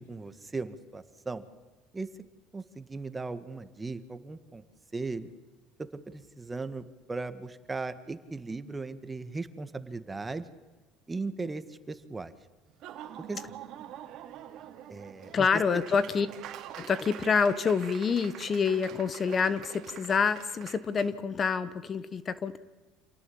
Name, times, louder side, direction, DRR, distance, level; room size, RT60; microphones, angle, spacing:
voice 1, 0.0-1.4 1.9-2.1 2.5-4.6 4.9-5.3 5.8-10.4 11.1-12.3 13.2-13.4 14.9-15.5 15.7-15.8, right 3 dB, 15° right, 12 dB, 1.7 m, -37 dB
Laughter / Applause, 12.7-21.1, right 11 dB, 60° right, 2.6 m, -45 dB
voice 2, 15.3-16.3 16.8-22.6, left 5 dB, 35° left, 16 dB, 1.1 m, -27 dB
27.5 x 18.0 x 8.6 m, 1.3 s
supercardioid pair, 100°, 0 cm